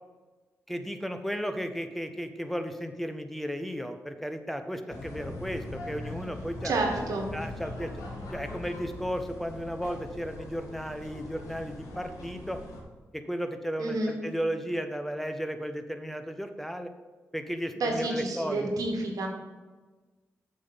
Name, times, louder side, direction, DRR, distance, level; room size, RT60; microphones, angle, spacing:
voice 1, 0.7-6.7 7.3-7.9 8.3-12.6 13.1-16.9 17.3-18.7, equal, 5° left, 7 dB, 0.9 m, -34 dB
sound 1, 4.9-12.8, left 1 dB, 85° left, 2.0 m, -41 dB
voice 2, 6.6-7.3 13.8-14.2 17.7-19.3, right 2 dB, 75° right, 2 dB, 1.7 m, -29 dB
7.5 x 5.9 x 5.5 m, 1.3 s
supercardioid pair, 45°, 6 cm